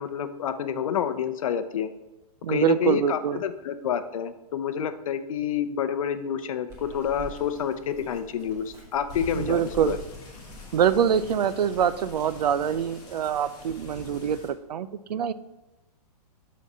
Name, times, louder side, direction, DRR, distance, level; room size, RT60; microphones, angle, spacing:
voice 1, 0.0-1.9 2.5-10.0, left 8 dB, 60° left, 11 dB, 0.7 m, -28 dB
voice 2, 2.4-3.4 9.3-10.0 10.7-15.3, right 8 dB, 90° right, 15 dB, 0.6 m, -24 dB
Bird vocalization bird call bird song, 6.7-13.0, left 1 dB, 15° right, 2.0 m, -46 dB
sound 1, 9.1-14.5, left 4 dB, 20° left, 1.7 m, -44 dB
11.0 x 4.2 x 5.5 m, 1.0 s
hypercardioid pair, 170°, 20 cm